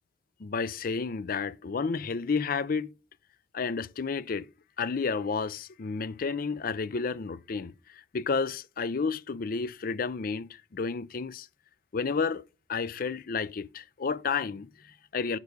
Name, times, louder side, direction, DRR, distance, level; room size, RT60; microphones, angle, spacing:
voice 1, 0.4-2.9 3.5-4.5 4.8-11.5 11.9-12.4 12.7-15.4, left 5 dB, 50° left, 0.5 m, -31 dB
10.5 x 4.8 x 5.3 m
head